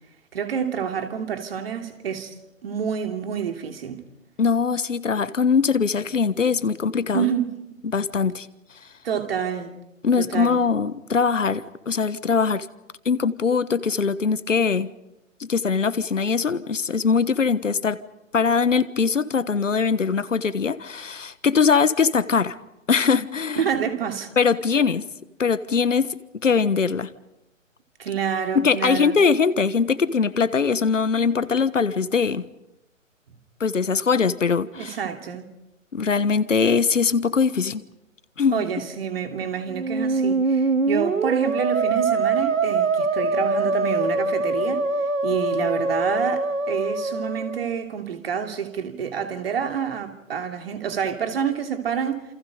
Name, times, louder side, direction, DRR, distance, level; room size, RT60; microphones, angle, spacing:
voice 1, 0.3-2.3 2.6-4.0 7.1-7.8 9.0-9.7 10.2-10.6 23.5-24.3 28.0-29.2 34.7-35.5 38.5-44.8 45.2-52.2, right 7 dB, 45° right, 3.0 m, -28 dB
voice 2, 4.4-7.3 7.8-8.5 10.0-12.7 13.0-14.9 15.4-18.0 18.3-22.6 22.9-23.6 24.4-25.0 25.4-26.1 26.4-27.1 28.5-32.4 33.6-35.0 35.9-37.8 38.4-38.6, left 5 dB, 70° left, 1.3 m, -21 dB
Musical instrument, 39.7-47.7, right 3 dB, 75° right, 1.7 m, -23 dB
30.0 x 28.0 x 5.1 m
figure-of-eight pair, 135°, 39 cm